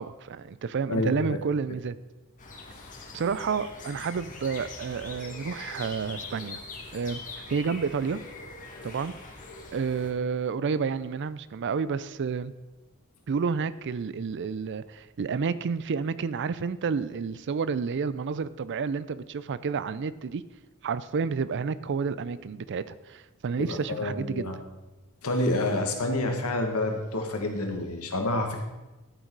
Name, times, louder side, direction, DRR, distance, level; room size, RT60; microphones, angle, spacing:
voice 1, 0.0-2.0 3.1-6.6 6.9-7.2 7.5-8.2 8.8-9.1 9.7-12.5 13.3-20.4 20.8-24.5, right 5 dB, 55° right, 16 dB, 0.4 m, -30 dB
voice 2, 0.9-1.4 23.6-24.6 25.2-28.6, left 2 dB, 75° left, 3 dB, 1.6 m, -28 dB
sound 1, 2.4-10.1, left 3 dB, 35° left, 1.4 m, -43 dB
12.0 x 6.5 x 4.6 m, 1.1 s
head